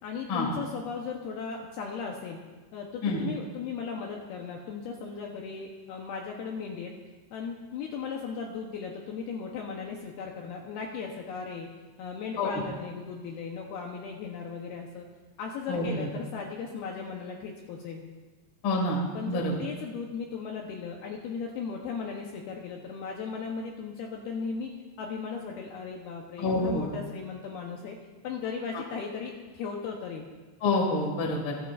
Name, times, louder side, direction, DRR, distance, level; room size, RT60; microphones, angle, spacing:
voice 1, 0.0-2.4 2.7-6.9 7.3-11.7 12.0-15.1 15.4-18.0 19.1-24.7 25.0-28.0 28.2-30.3, left 5 dB, 75° left, 0 dB, 2.5 m, -37 dB
voice 2, 15.7-16.1 18.6-19.0 19.3-19.5 26.4-26.9 30.6-31.5, left 2 dB, 45° left, 0 dB, 1.7 m, -27 dB
26.5 x 9.2 x 2.5 m, 1.3 s
omnidirectional pair, 5.2 m